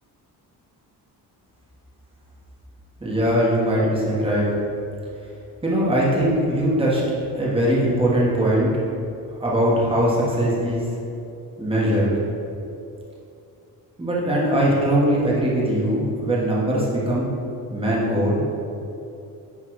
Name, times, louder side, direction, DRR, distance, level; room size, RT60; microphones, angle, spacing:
voice 1, 3.0-4.5 5.6-7.0 7.4-8.8 9.4-10.8 11.6-12.1 14.0-17.3 17.7-18.4, equal, 15° right, -6 dB, 1.5 m, -21 dB
9.7 x 3.6 x 4.7 m, 2.7 s
wide cardioid pair, 140°, 39 cm